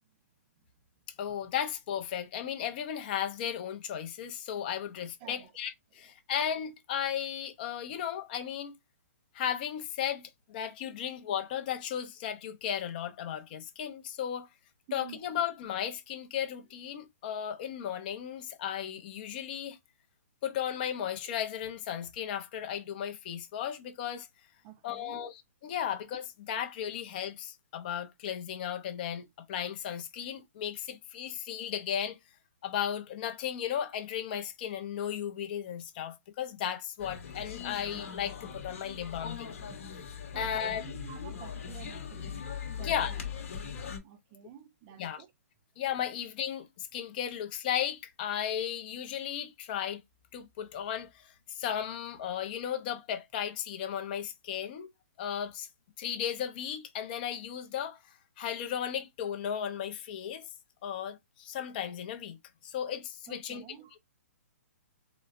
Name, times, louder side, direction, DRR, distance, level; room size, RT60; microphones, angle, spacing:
voice 1, 1.2-8.8 9.3-14.5 14.9-19.8 20.4-24.3 24.8-32.2 32.6-39.7 40.4-40.8 42.8-43.1 45.0-45.2 45.8-50.0 50.3-54.9 55.2-55.7 56.0-60.5 60.8-62.4 62.6-63.6, left 9 dB, 35° left, 0.5 m, -35 dB
voice 2, 5.2-5.5 14.9-15.2 24.6-25.3 40.3-42.4 42.8-43.2 44.0-45.3 63.3-64.0, right 10 dB, 20° right, 0.4 m, -49 dB
sound 1, 37.0-44.0, left 7 dB, 55° left, 1.1 m, -40 dB
4.0 x 2.1 x 2.4 m
hypercardioid pair, 160°, 9 cm